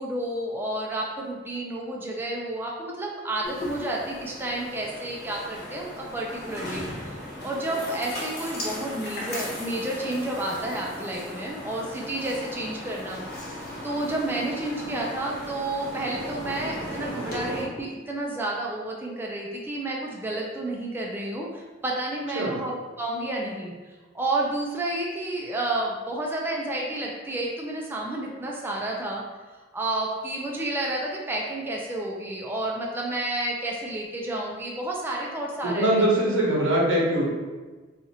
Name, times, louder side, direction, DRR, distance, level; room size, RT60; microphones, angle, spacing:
voice 1, 0.0-7.2 7.4-13.6 13.8-29.2 29.7-35.9, right 1 dB, 10° right, -2 dB, 0.4 m, -30 dB
sound 1, 3.4-17.6, left 1 dB, 55° left, 1.0 m, -37 dB
voice 2, 35.8-37.3, right 1 dB, 85° right, -5 dB, 1.1 m, -22 dB
2.8 x 2.4 x 4.1 m, 1.3 s
head